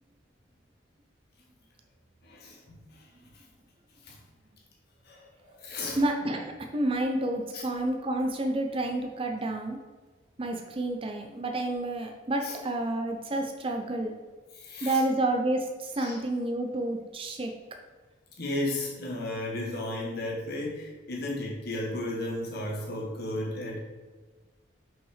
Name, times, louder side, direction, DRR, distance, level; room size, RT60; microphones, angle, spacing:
voice 1, 2.2-3.1 3.3-3.4 4.0-4.2 5.0-6.0 7.5-7.6 12.4-12.5 14.5-15.0 16.0-16.2 18.4-23.8, left 1 dB, 50° left, -2 dB, 1.3 m, -34 dB
voice 2, 6.0-9.8 10.4-14.1 14.8-17.5, right 1 dB, 30° right, 3 dB, 0.5 m, -29 dB
5.6 x 5.5 x 4.9 m, 1.3 s
head